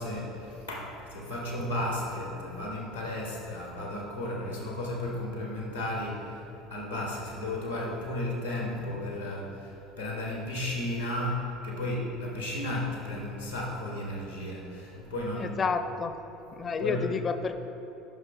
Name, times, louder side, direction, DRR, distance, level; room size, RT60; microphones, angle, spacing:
voice 1, 0.0-15.6 16.6-17.2, left 1 dB, 90° left, -2 dB, 1.3 m, -34 dB
voice 2, 15.4-16.1 16.5-17.6, left 4 dB, 30° left, 9 dB, 0.5 m, -30 dB
9.1 x 5.7 x 3.9 m, 3.0 s
figure-of-eight pair, 70°, 0 cm